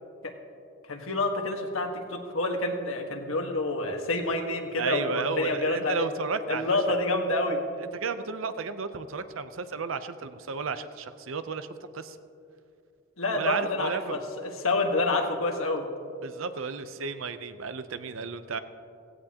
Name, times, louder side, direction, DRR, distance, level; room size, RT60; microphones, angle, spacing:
voice 1, 0.9-6.0 6.5-7.6 13.2-15.9, left 2 dB, 85° left, 3 dB, 1.4 m, -28 dB
voice 2, 4.8-6.8 7.9-11.7 11.9-12.2 13.3-14.2 16.2-18.6, right 5 dB, 80° right, 11 dB, 0.7 m, -33 dB
16.5 x 15.5 x 2.9 m, 2.5 s
head